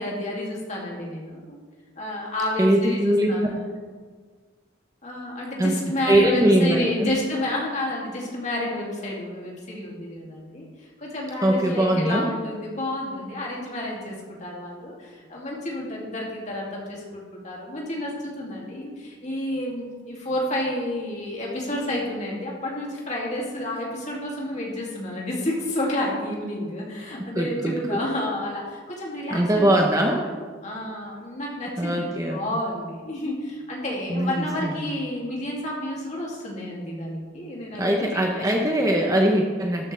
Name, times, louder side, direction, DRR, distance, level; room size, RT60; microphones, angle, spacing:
voice 1, 0.0-1.6 2.0-3.6 5.0-10.6 11.0-14.2 14.4-29.7 30.0-30.2 30.6-38.7, left 1 dB, 35° left, -3 dB, 2.7 m, -30 dB
voice 2, 2.6-3.3 5.6-5.8 6.1-7.1 11.4-12.3 27.3-28.0 29.3-30.2 31.8-32.4 34.1-34.9 37.8-39.9, right 1 dB, 15° right, 1 dB, 0.9 m, -21 dB
13.0 x 10.5 x 3.4 m, 1.5 s
head